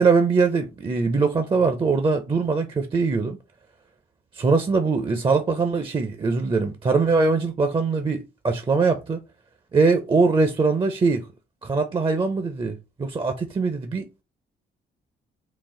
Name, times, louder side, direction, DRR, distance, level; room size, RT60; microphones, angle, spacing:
voice 1, 0.0-3.4 4.3-9.2 9.7-11.2 11.6-14.1, right 4 dB, 25° right, 0.5 m, -22 dB
4.0 x 2.3 x 3.7 m
cardioid pair, 90°, 20 cm